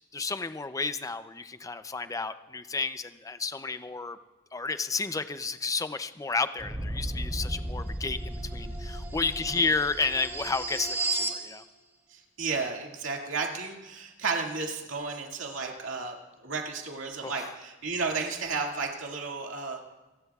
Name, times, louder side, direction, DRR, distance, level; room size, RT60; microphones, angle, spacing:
voice 1, 0.1-4.2 4.5-11.6 17.2-17.5, left 4 dB, 15° left, 11 dB, 0.5 m, -31 dB
sound 1, 6.6-11.4, right 1 dB, 10° right, 1.5 m, -34 dB
voice 2, 12.1-19.8, right 4 dB, 85° right, 0 dB, 2.2 m, -33 dB
27.0 x 19.5 x 2.4 m, 1.1 s
head